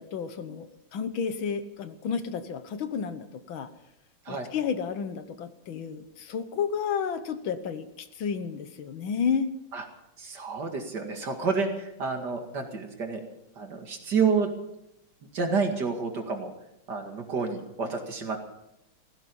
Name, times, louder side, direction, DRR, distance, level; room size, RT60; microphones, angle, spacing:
voice 1, 0.0-3.7 4.3-9.5, left 6 dB, 70° left, 10 dB, 1.8 m, -31 dB
voice 2, 10.2-13.2 13.6-14.5 15.3-16.5 16.9-18.4, right 5 dB, 55° right, 4 dB, 2.7 m, -29 dB
16.5 x 16.0 x 5.5 m, 0.84 s
omnidirectional pair, 2.3 m